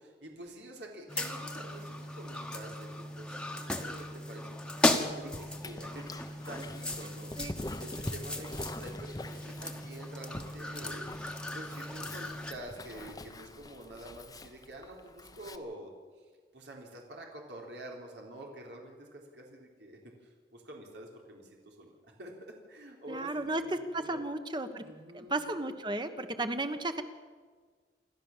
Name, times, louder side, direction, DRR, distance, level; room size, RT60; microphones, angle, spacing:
voice 1, 0.0-4.9 5.2-7.4 7.8-11.0 11.5-15.9 16.5-21.9 22.2-22.3 22.7-24.2 24.8-25.5, right 1 dB, 90° right, 0 dB, 3.8 m, -47 dB
sound 1, 1.1-12.5, left 1 dB, 5° left, 1.3 m, -36 dB
Dog, 5.0-15.6, left 1 dB, 20° left, 0.9 m, -45 dB
voice 2, 23.1-24.8 25.1-27.0, right 2 dB, 25° right, 8 dB, 1.2 m, -34 dB
28.0 x 12.5 x 7.4 m, 1.6 s
head